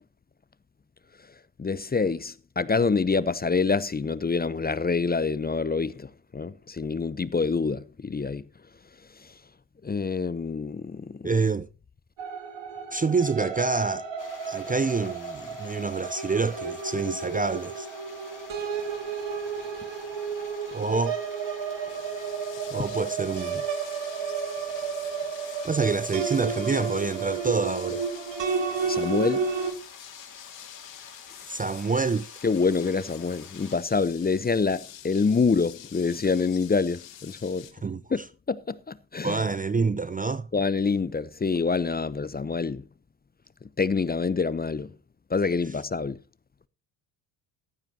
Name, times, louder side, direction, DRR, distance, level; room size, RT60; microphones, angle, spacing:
voice 1, 1.6-8.5 9.2-9.3 9.8-11.3 28.8-29.5 32.4-37.7 38.1-38.2 38.5-39.4 40.5-42.9 43.8-44.9 45.3-46.2, left 4 dB, 20° left, 0.7 m, -26 dB
voice 2, 11.2-11.7 12.9-14.1 14.5-17.9 20.7-21.2 22.7-23.7 25.6-28.1 31.5-32.4 37.8-38.0 39.2-40.5, right 4 dB, 15° right, 0.6 m, -27 dB
sound 1, 12.2-29.7, right 5 dB, 60° right, 2.7 m, -32 dB
sound 2, 14.2-33.8, left 5 dB, 40° left, 3.8 m, -49 dB
sound 3, 21.9-37.7, left 10 dB, 60° left, 2.4 m, -47 dB
15.0 x 12.5 x 2.9 m
hypercardioid pair, 60°, 49 cm